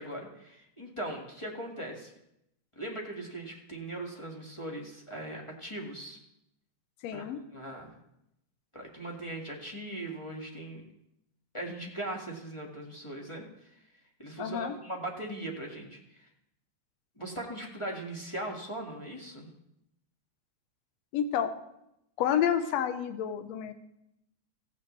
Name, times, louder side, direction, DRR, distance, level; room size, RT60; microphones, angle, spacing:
voice 1, 0.0-2.1 2.7-6.2 7.1-7.2 7.5-7.9 8.7-10.8 11.5-13.4 13.7-13.8 14.2-16.3 17.2-19.5, right 1 dB, 15° left, -2 dB, 1.0 m, -39 dB
voice 2, 7.0-7.4 14.4-14.8 21.1-21.5 22.2-23.7, left 9 dB, 70° left, 8 dB, 1.9 m, -29 dB
15.5 x 14.5 x 3.2 m, 0.82 s
omnidirectional pair, 3.4 m